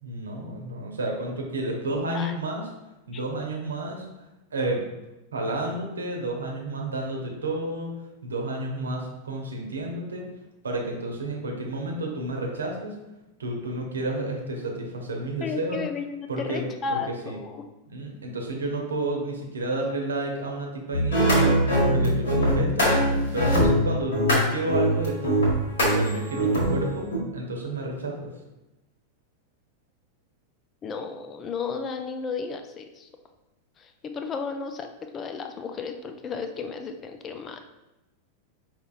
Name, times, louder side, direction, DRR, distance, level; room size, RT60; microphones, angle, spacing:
voice 1, 0.0-2.7 3.1-4.0 4.5-4.9 5.3-7.9 8.2-10.2 10.6-13.0 13.4-15.8 16.3-17.4 17.9-23.0 23.3-25.5 25.9-28.3, right 2 dB, 70° right, 1 dB, 0.8 m, -31 dB
voice 2, 15.4-17.6 30.8-33.1 33.8-37.6, left 5 dB, 25° left, 6 dB, 0.4 m, -33 dB
sound 1, 20.9-27.2, equal, 65° left, 1.3 m, -21 dB
5.3 x 2.9 x 2.4 m, 0.97 s
figure-of-eight pair, 90°, 0 cm